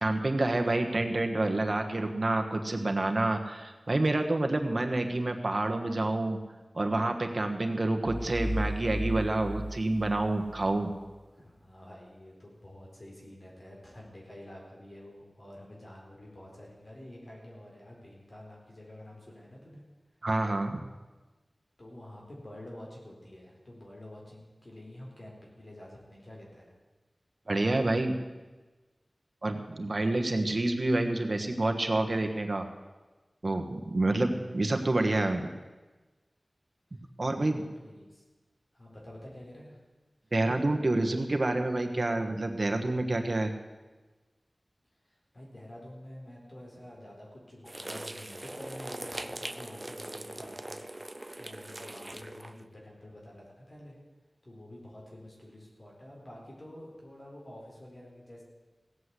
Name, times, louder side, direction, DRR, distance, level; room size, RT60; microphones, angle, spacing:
voice 1, 0.0-6.4 6.7-10.9 20.2-20.8 27.5-28.2 29.4-32.7 33.4-35.5 37.2-37.6 40.3-43.5, right 2 dB, 55° right, 5 dB, 1.4 m, -28 dB
sound 1, 8.1-10.7, equal, 5° left, 0.9 m, -35 dB
voice 2, 11.3-19.8 21.8-26.7 30.0-30.3 37.3-38.2 38.7-39.8 45.1-54.0 54.4-58.4, left 1 dB, 50° left, -3 dB, 4.2 m, -48 dB
sound 2, 47.7-52.6, right 1 dB, 30° right, 0.6 m, -41 dB
16.5 x 8.0 x 8.2 m, 1.2 s
wide cardioid pair, 65°, 0 cm